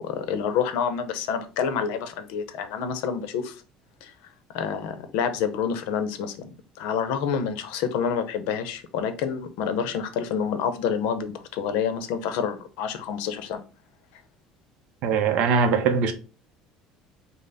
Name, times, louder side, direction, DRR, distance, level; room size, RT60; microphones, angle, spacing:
voice 1, 0.0-3.6 4.0-4.1 4.5-13.6, left 7 dB, 70° left, 0.6 m, -28 dB
voice 2, 15.0-16.1, right 5 dB, 50° right, 0.6 m, -21 dB
5.4 x 2.0 x 3.9 m
cardioid pair, 175°, 2 cm